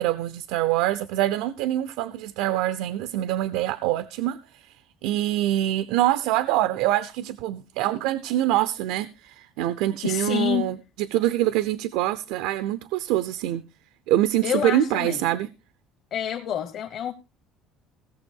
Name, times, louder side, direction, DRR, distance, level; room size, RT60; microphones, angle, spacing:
voice 1, 0.0-4.8 5.0-13.7 14.1-15.5, right 14 dB, 90° right, 0.6 m, -25 dB
voice 2, 10.0-10.7 14.4-15.2 16.1-17.1, left 10 dB, 45° left, 1.0 m, -27 dB
17.0 x 7.0 x 4.5 m
cardioid pair, 160°, 0 cm